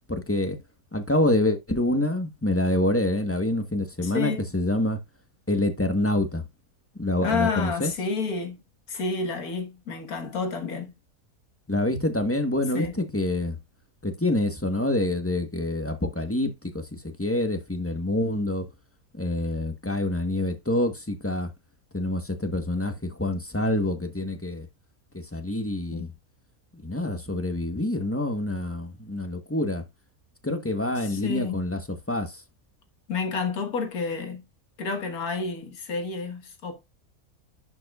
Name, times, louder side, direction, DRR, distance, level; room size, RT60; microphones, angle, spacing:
voice 1, 0.1-0.6 0.9-5.0 5.5-6.5 7.0-7.9 11.7-13.6 14.0-18.7 19.1-21.5 21.9-24.7 25.1-26.1 26.8-29.8 30.4-31.8 32.1-32.4, left 1 dB, 10° left, 1.0 m, -26 dB
voice 2, 4.0-4.5 7.2-8.6 8.9-10.9 12.7-13.0 25.9-26.1 31.0-31.6 33.1-34.4 34.8-36.8, left 4 dB, 75° left, 1.9 m, -30 dB
11.0 x 5.3 x 2.3 m
omnidirectional pair, 1.6 m